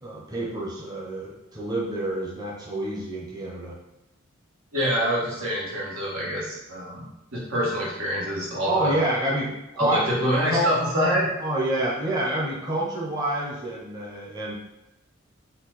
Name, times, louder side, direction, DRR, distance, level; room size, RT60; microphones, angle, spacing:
voice 1, 0.0-3.8 6.2-6.3 8.6-9.5 9.8-10.1 10.5-10.7 11.4-14.6, right 1 dB, 20° right, -5 dB, 0.6 m, -28 dB
voice 2, 4.7-7.0 7.3-9.0 9.8-11.3, equal, 90° right, -5 dB, 1.4 m, -25 dB
4.4 x 2.3 x 3.9 m, 0.90 s
head